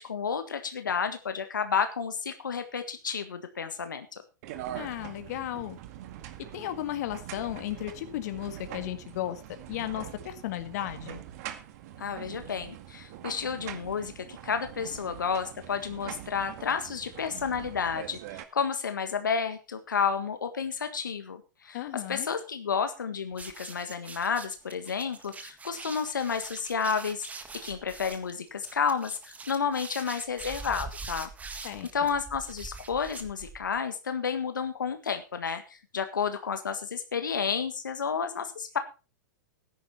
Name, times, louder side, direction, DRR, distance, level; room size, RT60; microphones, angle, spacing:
voice 1, 0.0-4.1 12.0-27.3 27.6-31.7 31.9-38.8, left 6 dB, 85° left, 8 dB, 1.6 m, -31 dB
sound 1, 4.4-18.4, right 12 dB, 55° right, 1.9 m, -43 dB
voice 2, 4.7-5.8 6.5-9.4 9.7-11.2 21.7-22.3 31.6-31.9, left 13 dB, 55° left, 9 dB, 1.8 m, -34 dB
sound 2, 23.3-33.8, right 4 dB, 15° right, 1.7 m, -43 dB
14.0 x 10.5 x 4.2 m, 0.32 s
hypercardioid pair, 110°, 10 cm